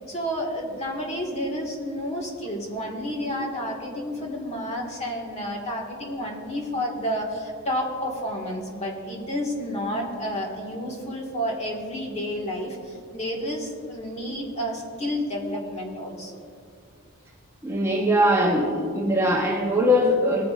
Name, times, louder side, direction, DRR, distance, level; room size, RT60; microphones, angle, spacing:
voice 1, 0.1-16.4, equal, 30° left, -1 dB, 1.8 m, -30 dB
voice 2, 17.6-20.4, equal, 10° right, -2 dB, 1.0 m, -21 dB
18.5 x 9.5 x 2.5 m, 2.4 s
head